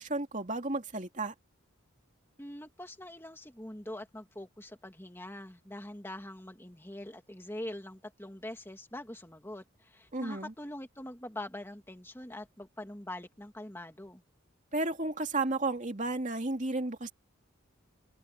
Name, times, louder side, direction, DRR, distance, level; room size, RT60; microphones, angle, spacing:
voice 1, 0.0-1.3 10.1-10.5 14.7-17.1, right 2 dB, 40° right, 2.8 m, -33 dB
voice 2, 2.4-14.2, left 1 dB, 10° left, 2.3 m, -44 dB
open air
head